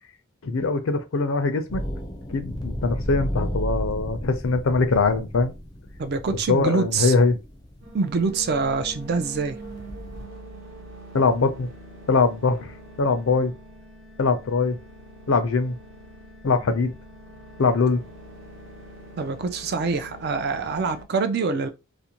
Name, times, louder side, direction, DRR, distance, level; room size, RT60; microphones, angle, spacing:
voice 1, 0.4-1.8 2.3-5.5 6.3-7.4 11.1-11.7 12.1-12.7 13.0-13.5 14.2-14.8 15.3-15.8 16.4-16.9 17.6-18.0, left 4 dB, 80° left, 0.5 m, -22 dB
sound 1, 1.7-10.2, equal, 20° left, 0.4 m, -34 dB
voice 2, 6.0-7.1 7.9-9.6 19.2-21.7, right 4 dB, 50° right, 0.4 m, -25 dB
sound 2, 7.8-21.0, right 1 dB, 70° right, 0.9 m, -44 dB
2.5 x 2.1 x 2.8 m
head